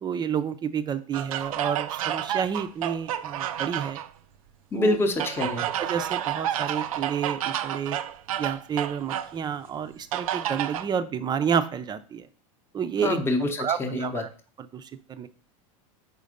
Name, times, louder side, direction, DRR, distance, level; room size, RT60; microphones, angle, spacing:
voice 1, 0.0-4.0 4.7-5.0 5.7-8.0 8.4-12.3 12.7-13.2 13.6-14.3 14.6-15.3, right 7 dB, 25° right, 11 dB, 0.5 m, -30 dB
sound 1, 1.1-4.1 5.2-9.3 10.1-10.9, right 11 dB, 90° right, 0.5 m, -30 dB
voice 2, 4.7-5.7 13.0-14.2, left 2 dB, 15° left, 4 dB, 0.8 m, -26 dB
5.0 x 4.0 x 5.1 m, 0.40 s
supercardioid pair, 120°, 18 cm